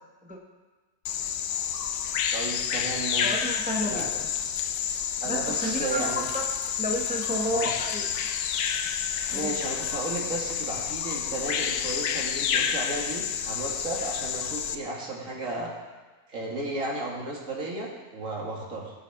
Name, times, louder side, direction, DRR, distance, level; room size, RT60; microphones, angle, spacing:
Bird vocalization bird call bird song, 1.1-14.8, left 8 dB, 80° left, 1.2 m, -29 dB
voice 1, 2.3-3.4 3.8-4.1 5.2-6.2 7.5-7.7 9.3-15.7 16.3-18.9, right 2 dB, 55° right, -3 dB, 2.4 m, -34 dB
voice 2, 3.2-4.3 5.2-6.4 6.8-8.0 9.3-9.5, equal, 5° right, 0 dB, 0.9 m, -31 dB
17.5 x 7.6 x 3.5 m, 1.3 s
omnidirectional pair, 1.6 m